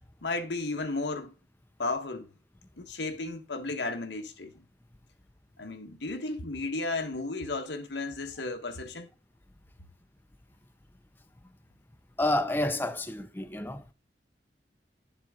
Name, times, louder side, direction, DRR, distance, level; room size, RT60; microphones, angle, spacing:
voice 1, 0.2-1.3 1.8-2.3 2.8-4.5 5.6-9.1, left 3 dB, 90° left, 1.4 m, -34 dB
voice 2, 12.2-13.8, left 1 dB, 10° left, 0.6 m, -29 dB
11.0 x 7.5 x 3.7 m
head